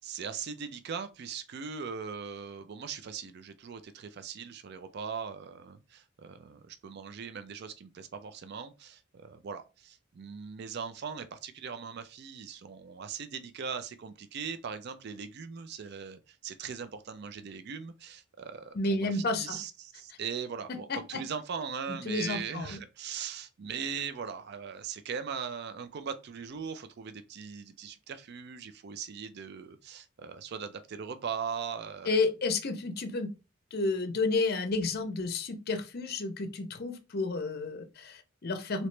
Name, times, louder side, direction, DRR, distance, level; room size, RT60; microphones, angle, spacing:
voice 1, 0.0-32.1, right 6 dB, 55° right, 0.4 m, -40 dB
voice 2, 18.7-19.6 20.7-21.2 22.0-22.8 32.1-33.3 33.7-38.9, left 3 dB, 50° left, 0.6 m, -31 dB
3.1 x 2.9 x 3.2 m
head